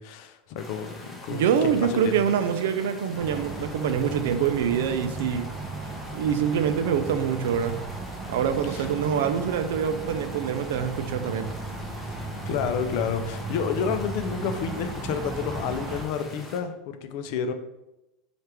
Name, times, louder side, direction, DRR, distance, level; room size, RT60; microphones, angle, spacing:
voice 1, 0.0-2.1 8.6-8.9 12.4-17.5, left 7 dB, 65° left, 0.4 m, -30 dB
sound 1, 0.6-16.6, left 1 dB, 15° left, 0.7 m, -44 dB
voice 2, 1.3-5.5 6.1-7.9 8.3-11.5, right 8 dB, 90° right, 0.4 m, -25 dB
sound 2, 3.1-16.1, right 2 dB, 30° right, 0.5 m, -36 dB
3.3 x 2.4 x 4.3 m
supercardioid pair, 140°, 0 cm